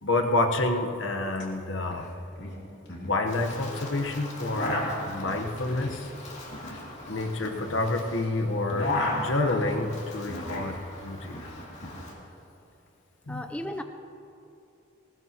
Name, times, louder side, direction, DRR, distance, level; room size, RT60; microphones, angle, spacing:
voice 1, 0.0-2.1 3.0-6.1 7.1-11.4 13.3-13.4, left 2 dB, 75° left, 4 dB, 1.1 m, -28 dB
sound 1, 1.4-1.5 1.7-2.1 2.4-3.6 4.2-8.2 8.5-10.8 11.0-12.0, left 1 dB, 60° left, 2.6 m, -34 dB
Wind, 3.3-12.1, left 1 dB, 35° left, 2.5 m, -44 dB
voice 2, 13.3-13.8, left 1 dB, 5° left, 6 dB, 0.5 m, -34 dB
19.5 x 19.0 x 3.0 m, 2.8 s
head